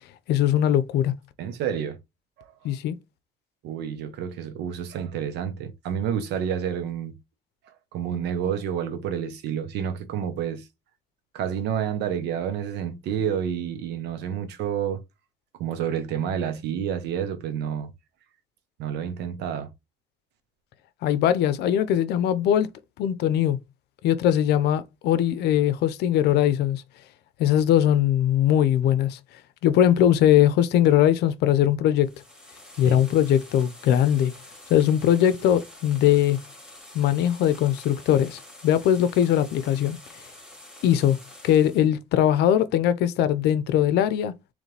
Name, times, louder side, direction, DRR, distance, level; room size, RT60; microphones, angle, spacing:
voice 1, 0.3-1.1 2.6-3.0 21.0-22.7 23.0-23.6 24.0-26.8 27.4-29.2 29.6-32.1 32.8-34.3 34.7-36.4 36.9-40.0 40.8-41.2 41.4-44.3, left 10 dB, 80° left, 0.7 m, -21 dB
voice 2, 1.4-2.0 2.4-2.5 3.6-7.1 7.9-10.6 11.3-15.0 15.6-17.9 18.8-19.7 32.8-33.0, right 8 dB, 85° right, 1.0 m, -29 dB
sound 1, 32.0-41.9, left 1 dB, 5° right, 2.3 m, -47 dB
4.0 x 3.2 x 3.3 m
cardioid pair, 110°, 17 cm